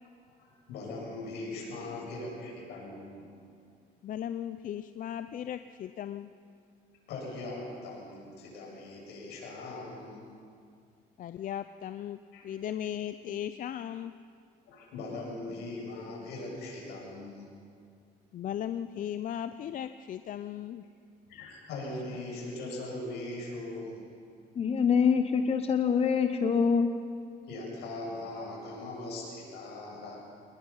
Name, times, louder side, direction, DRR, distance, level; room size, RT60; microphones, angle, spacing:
voice 1, 0.4-3.3 7.1-10.2 12.3-12.4 14.6-17.5 21.3-24.0 27.4-30.3, left 2 dB, 80° left, -2 dB, 7.5 m, -40 dB
voice 2, 4.0-6.3 11.2-14.1 18.3-20.8, left 10 dB, 50° left, 11 dB, 0.6 m, -37 dB
voice 3, 24.6-26.9, left 6 dB, 35° left, 7 dB, 1.0 m, -25 dB
28.5 x 20.0 x 5.7 m, 2.3 s
cardioid pair, 110°, 17 cm